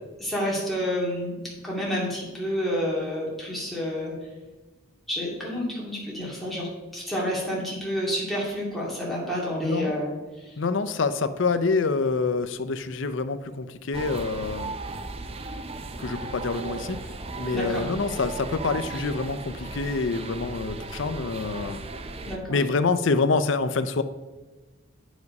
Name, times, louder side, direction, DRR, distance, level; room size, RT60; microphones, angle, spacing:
voice 1, 0.2-1.4 1.6-4.1 5.1-10.1 10.4-10.5 17.5-17.8 22.2-22.6, equal, ahead, -6 dB, 2.3 m, -29 dB
voice 2, 9.6-9.9 10.6-14.7 16.0-17.0 17.3-21.8 22.5-24.0, left 4 dB, 65° left, 11 dB, 0.5 m, -26 dB
sound 1, 13.9-22.4, right 3 dB, 30° right, 0.5 m, -36 dB
9.5 x 5.0 x 5.3 m, 1.2 s
head